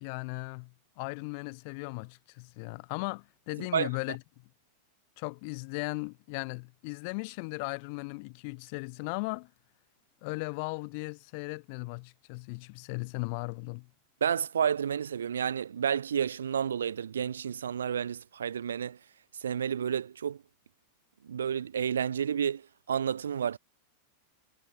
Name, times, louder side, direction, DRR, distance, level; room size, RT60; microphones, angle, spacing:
voice 1, 0.0-4.2 5.2-9.5 10.2-13.9, left 33 dB, 45° left, 0.3 m, -37 dB
voice 2, 3.6-3.9 14.2-19.0 19.4-20.4 21.2-23.6, right 8 dB, 65° right, 0.4 m, -30 dB
figure-of-eight pair, 90°, 0 cm